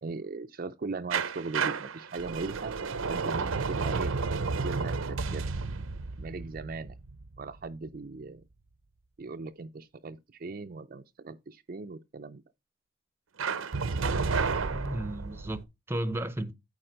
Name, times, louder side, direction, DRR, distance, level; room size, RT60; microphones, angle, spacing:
voice 1, 0.0-2.7 3.1-4.1 4.5-5.5 6.2-7.0 7.4-8.4 9.2-12.4, right 3 dB, 45° right, 0.4 m, -39 dB
sound 1, 1.1-7.9 13.4-15.6, right 4 dB, 85° right, 0.7 m, -31 dB
voice 2, 14.7-16.5, right 1 dB, 10° right, 0.7 m, -34 dB
8.9 x 3.5 x 5.1 m
head